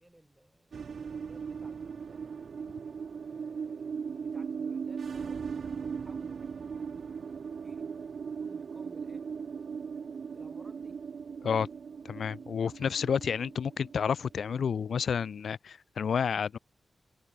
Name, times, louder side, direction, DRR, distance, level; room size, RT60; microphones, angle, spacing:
voice 1, 0.0-2.6 3.3-9.3 10.3-11.0, right 1 dB, 10° right, 6.1 m, -59 dB
sound 1, 0.7-15.4, right 6 dB, 70° right, 2.3 m, -39 dB
voice 2, 12.0-16.6, left 7 dB, 80° left, 0.8 m, -30 dB
wide cardioid pair, 110°, 0 cm